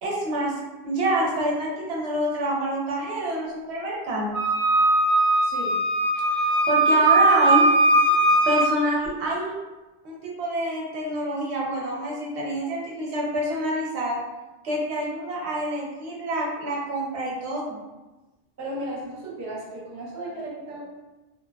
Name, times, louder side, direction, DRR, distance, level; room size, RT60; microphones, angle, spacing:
voice 1, 0.0-0.5 0.8-4.3 6.3-7.7 8.5-9.5 10.0-14.2 14.6-17.8, right 1 dB, 85° right, -3 dB, 0.9 m, -27 dB
Wind instrument woodwind instrument, 4.3-8.7, right 1 dB, 35° left, 1.1 m, -19 dB
voice 2, 5.4-5.8 18.6-20.8, right 1 dB, 25° right, -5 dB, 0.4 m, -35 dB
2.9 x 2.1 x 2.2 m, 1.1 s
omnidirectional pair, 1.1 m